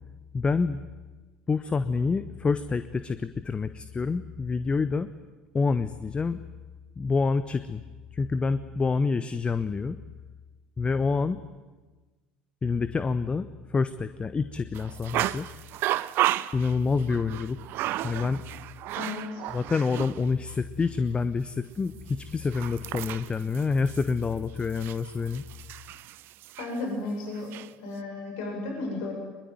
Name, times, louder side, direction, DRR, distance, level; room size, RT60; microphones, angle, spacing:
voice 1, 0.3-0.8 1.5-5.1 5.5-6.4 7.0-7.8 8.1-10.0 10.8-11.4 12.6-15.5 16.5-17.6 18.0-18.4 19.5-25.4, left 4 dB, 25° left, 13 dB, 1.0 m, -27 dB
sound 1, 14.7-20.2 20.5-20.6 22.1-26.8 27.3-27.7, right 15 dB, 55° right, 0.7 m, -33 dB
voice 2, 19.0-19.4 26.6-27.5 27.8-29.1, left 2 dB, 65° left, 1 dB, 7.0 m, -33 dB
24.0 x 22.0 x 9.4 m, 1.2 s
figure-of-eight pair, 65°, 5 cm